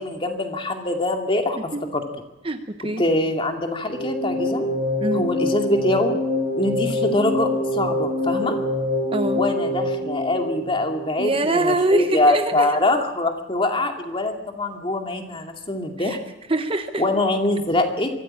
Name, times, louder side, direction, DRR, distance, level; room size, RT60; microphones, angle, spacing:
voice 1, 0.0-1.6 1.9-2.0 3.0-4.7 5.1-6.1 6.6-8.6 9.4-16.2 17.0-18.1, left 2 dB, 25° left, 3 dB, 2.4 m, -23 dB
voice 2, 2.4-3.1 5.0-5.2 9.1-9.4 11.2-12.8 16.0-16.2 16.5-17.0, right 2 dB, 25° right, 8 dB, 1.0 m, -23 dB
sound 1, 3.9-11.1, left 1 dB, 55° left, 5.1 m, -25 dB
23.5 x 14.0 x 8.9 m, 0.94 s
head